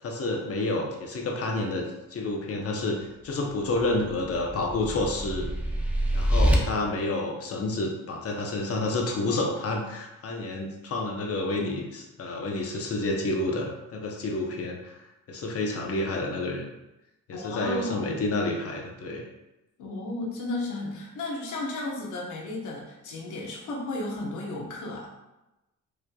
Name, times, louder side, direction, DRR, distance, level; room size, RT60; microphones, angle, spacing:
voice 1, 0.0-5.5 6.1-15.0 15.3-16.7 17.3-19.2, left 2 dB, 50° left, 0 dB, 0.9 m, -29 dB
sound 1, 3.9-6.6, equal, 5° right, 0.7 m, -26 dB
voice 2, 17.3-18.2 19.8-25.1, left 2 dB, 80° left, -2 dB, 1.1 m, -34 dB
4.8 x 3.3 x 2.3 m, 0.97 s
cardioid pair, 90°, 30 cm